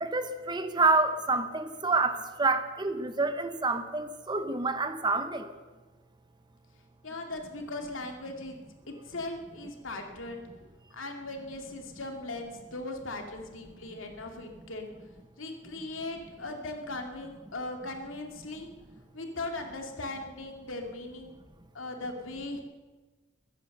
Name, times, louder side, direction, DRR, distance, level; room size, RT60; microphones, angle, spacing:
voice 1, 0.0-5.5, right 3 dB, 20° right, 8 dB, 0.9 m, -28 dB
voice 2, 7.0-8.6 8.9-14.9 15.4-18.7 19.1-21.3 21.7-22.6, left 2 dB, 80° left, 3 dB, 2.5 m, -39 dB
21.0 x 9.6 x 6.7 m, 1.3 s
head